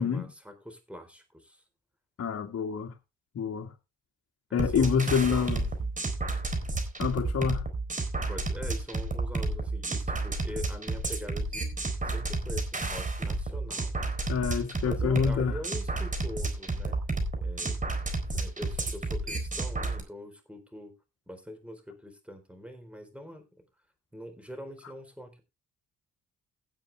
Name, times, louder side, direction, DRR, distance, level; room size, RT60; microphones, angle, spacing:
voice 1, 0.0-1.6 4.5-5.9 8.3-11.8 12.0-14.0 14.8-17.0 17.4-20.9 21.3-23.7 24.1-25.4, left 1 dB, 5° right, 4.1 m, -43 dB
voice 2, 2.2-2.9 3.3-3.7 4.5-5.6 7.0-7.6 14.3-15.6, left 6 dB, 55° left, 1.9 m, -27 dB
sound 1, 4.6-20.0, right 3 dB, 25° right, 4.1 m, -31 dB
17.0 x 7.3 x 3.5 m
cardioid pair, 90°, 30 cm